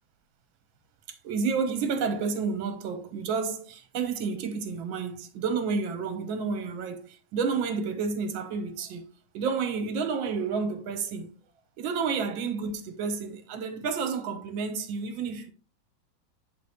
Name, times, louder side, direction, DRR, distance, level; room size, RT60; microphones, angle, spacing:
voice 1, 1.2-9.1 9.3-11.3 11.8-15.5, right 5 dB, 75° right, 1.7 m, -30 dB
7.6 x 4.0 x 3.4 m
omnidirectional pair, 2.2 m